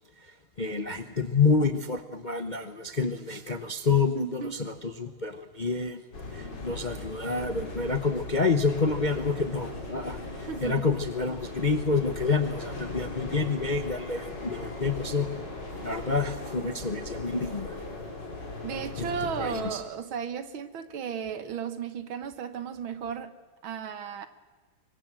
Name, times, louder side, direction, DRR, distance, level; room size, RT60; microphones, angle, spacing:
voice 1, 0.2-6.0 6.3-15.3 15.8-17.8 19.0-19.1 19.4-19.8, left 4 dB, 40° left, 8 dB, 0.7 m, -28 dB
voice 2, 4.1-4.6 10.5-10.9 18.6-23.3 23.6-24.3, right 7 dB, 70° right, 11 dB, 2.0 m, -34 dB
sound 1, 6.1-19.7, left 3 dB, 55° left, 4.4 m, -38 dB
25.0 x 23.5 x 7.6 m, 1.3 s
omnidirectional pair, 2.3 m